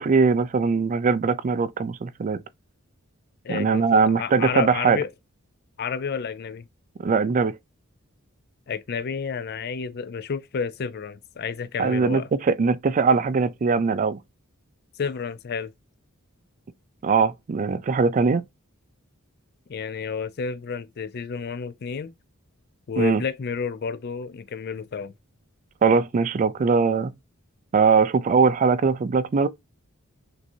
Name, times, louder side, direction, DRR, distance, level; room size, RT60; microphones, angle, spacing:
voice 1, 0.0-2.4 3.5-5.0 7.0-7.5 11.8-14.2 17.0-18.4 23.0-23.2 25.8-27.1 27.7-29.5, right 5 dB, 35° right, 0.3 m, -21 dB
voice 2, 3.4-5.1 5.8-6.7 8.7-12.3 15.0-15.7 19.7-22.1 22.9-25.1, left 6 dB, 50° left, 0.4 m, -30 dB
5.9 x 2.7 x 2.7 m
head